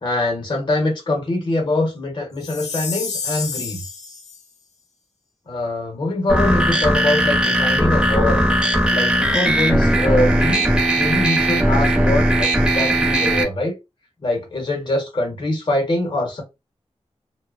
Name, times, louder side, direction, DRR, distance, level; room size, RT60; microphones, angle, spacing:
voice 1, 0.0-3.8 5.5-8.4 8.9-10.6 10.9-13.7 14.2-16.4, left 2 dB, 45° left, 0.8 m, -23 dB
Chime, 2.4-4.4, left 5 dB, 80° left, 0.4 m, -29 dB
sound 1, 6.3-13.4, right 1 dB, 10° right, 0.7 m, -18 dB
2.7 x 2.1 x 2.4 m
wide cardioid pair, 100°, 11 cm